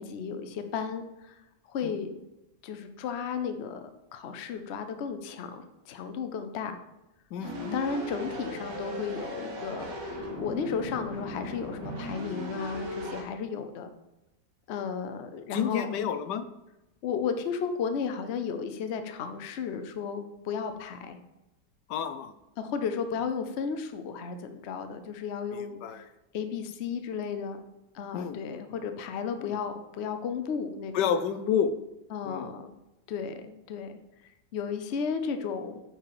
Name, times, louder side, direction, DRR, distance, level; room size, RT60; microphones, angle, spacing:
voice 1, 0.0-1.4 1.7-2.1 2.6-3.8 4.1-6.8 7.7-13.9 14.7-15.9 17.0-21.2 22.6-25.8 26.3-27.6 27.9-31.0 32.1-32.7 33.1-33.9 34.5-35.8, left 6 dB, 55° left, 8 dB, 0.8 m, -34 dB
voice 2, 7.3-7.8 15.5-16.4 21.9-22.3 25.5-26.0 28.1-28.6 29.4-29.6 30.9-31.7 32.2-32.5, left 8 dB, 85° left, 11 dB, 1.2 m, -30 dB
sound 1, 7.4-13.2, equal, 85° right, 1.9 m, -37 dB
8.9 x 4.6 x 4.7 m, 0.95 s
omnidirectional pair, 1.8 m